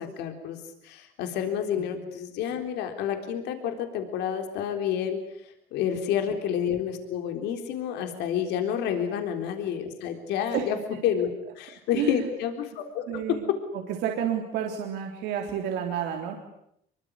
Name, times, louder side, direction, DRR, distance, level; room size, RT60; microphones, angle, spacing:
voice 1, 0.0-10.8 11.0-11.3 11.6-13.2, left 9 dB, 85° left, 6 dB, 3.8 m, -29 dB
voice 2, 13.1-13.4 13.7-16.3, right 9 dB, 90° right, 3 dB, 3.5 m, -30 dB
25.5 x 23.5 x 9.9 m, 0.76 s
cardioid pair, 110°, 17 cm